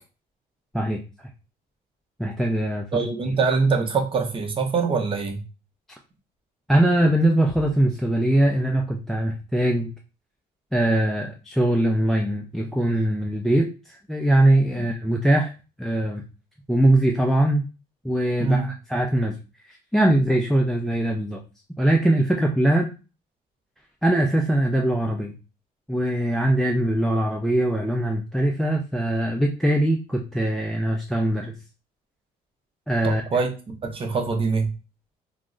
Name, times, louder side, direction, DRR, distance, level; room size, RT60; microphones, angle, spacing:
voice 1, 2.2-3.0 6.7-9.9 10.7-15.5 15.8-16.2 16.7-17.6 18.0-19.4 19.7-21.4 21.8-22.9 24.0-25.4 25.9-31.5 32.9-33.2, right 1 dB, ahead, 1 dB, 0.3 m, -22 dB
voice 2, 2.9-5.4 14.8-14.9 18.4-18.7 33.0-33.5 33.8-34.7, right 4 dB, 30° right, 3 dB, 0.6 m, -24 dB
2.2 x 2.0 x 3.6 m, 0.32 s
cardioid pair, 110°, 17 cm